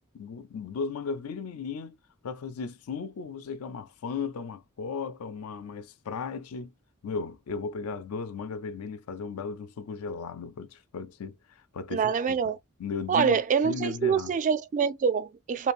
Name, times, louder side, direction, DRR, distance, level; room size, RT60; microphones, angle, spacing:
voice 1, 0.1-2.0 2.2-6.7 7.0-12.4 12.8-14.3, left 5 dB, 80° left, 0.4 m, -36 dB
voice 2, 11.9-12.6 13.1-15.7, right 6 dB, 35° right, 0.3 m, -25 dB
2.8 x 2.5 x 2.4 m
head